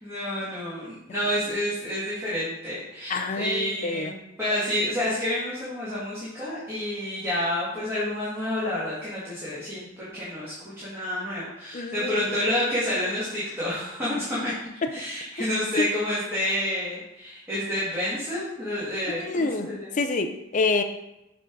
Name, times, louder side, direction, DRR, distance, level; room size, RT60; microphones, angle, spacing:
voice 1, 0.0-14.5 14.9-19.9, left 1 dB, 10° right, -11 dB, 1.9 m, -29 dB
voice 2, 3.1-4.1 11.7-12.2 15.4-15.5 15.8-15.9 19.1-19.7 20.0-20.8, left 3 dB, 40° left, 7 dB, 0.5 m, -27 dB
6.9 x 3.7 x 4.6 m, 0.90 s
head